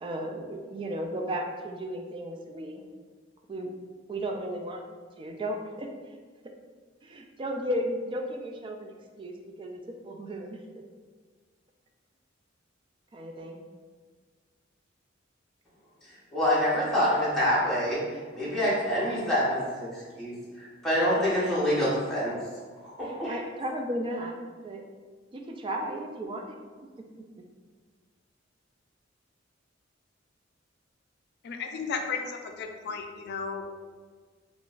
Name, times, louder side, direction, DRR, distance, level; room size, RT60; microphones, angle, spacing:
voice 1, 0.0-2.8 3.5-3.7 4.1-4.8 5.2-6.1 7.0-10.6 13.1-13.6 23.0-24.3 24.6-24.8 25.3-26.6, equal, 25° right, 2 dB, 0.3 m, -34 dB
voice 2, 16.3-18.0 18.3-22.3 22.8-23.4, equal, ahead, -10 dB, 0.8 m, -26 dB
voice 3, 31.4-33.6, left 5 dB, 55° left, 5 dB, 0.3 m, -34 dB
3.7 x 2.4 x 2.4 m, 1.5 s
head